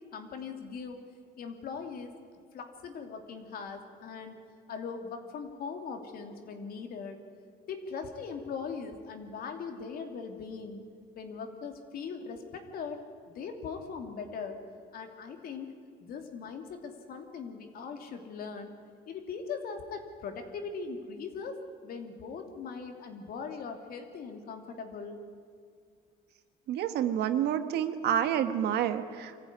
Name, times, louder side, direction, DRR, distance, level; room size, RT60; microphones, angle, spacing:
voice 1, 0.1-1.0 1.4-2.1 2.5-4.4 4.7-7.2 7.7-10.8 11.1-14.6 14.9-15.7 16.0-18.7 19.1-25.2, left 5 dB, 60° left, 5 dB, 3.0 m, -40 dB
voice 2, 26.7-29.4, right 10 dB, 75° right, 9 dB, 1.5 m, -29 dB
24.5 x 15.0 x 9.7 m, 2.1 s
cardioid pair, 110°, 17 cm